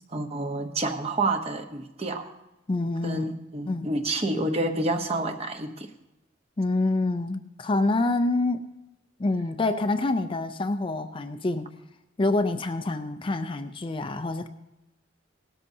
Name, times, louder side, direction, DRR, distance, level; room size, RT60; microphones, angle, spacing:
voice 1, 0.1-2.3 3.0-5.9, right 2 dB, 30° right, 6 dB, 0.9 m, -29 dB
voice 2, 2.7-3.3 3.7-3.9 6.6-8.7 9.2-11.7 12.2-14.5, left 2 dB, 25° left, 8 dB, 0.4 m, -26 dB
18.0 x 13.0 x 2.7 m, 0.94 s
head